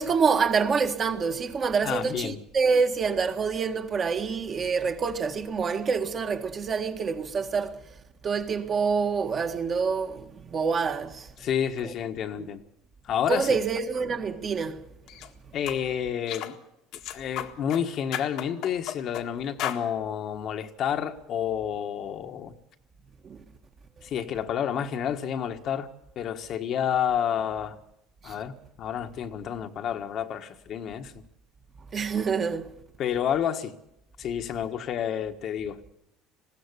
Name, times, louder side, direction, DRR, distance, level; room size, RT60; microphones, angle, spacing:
voice 1, 0.0-8.0 8.2-11.5 11.8-11.9 12.4-12.5 13.3-14.9 23.2-23.4 28.2-28.4 31.9-32.7, right 5 dB, 35° right, 1.7 m, -27 dB
voice 2, 1.8-2.4 11.4-12.6 13.0-13.6 15.5-16.5 17.1-22.5 24.0-25.9 26.1-27.8 28.2-31.1 33.0-33.7 34.2-35.9, left 9 dB, 50° left, 1.5 m, -29 dB
sound 1, 15.1-15.3 15.7-15.8 16.3-16.5 16.9-17.8 18.1-19.3 19.6-19.8, left 12 dB, 70° left, 1.7 m, -34 dB
20.5 x 15.5 x 8.3 m
supercardioid pair, 105°, 0 cm